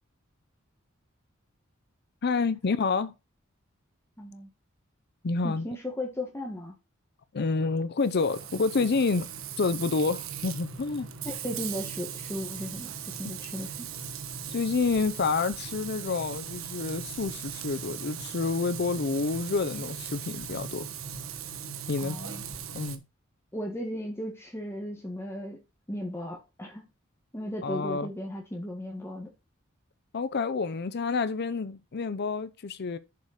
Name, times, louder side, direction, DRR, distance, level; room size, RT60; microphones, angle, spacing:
voice 1, 2.2-3.1 5.2-5.7 7.3-9.3 9.6-11.1 14.5-20.9 21.9-22.2 22.7-23.0 27.6-28.1 30.1-33.0, left 4 dB, 55° left, 0.6 m, -28 dB
voice 2, 4.2-4.5 5.4-6.7 11.2-13.7 22.0-22.4 23.5-25.6 25.9-26.8 27.3-29.3, left 1 dB, 10° left, 1.6 m, -36 dB
Frying (food), 8.0-23.0, right 7 dB, 90° right, 1.2 m, -39 dB
7.0 x 4.8 x 6.5 m
head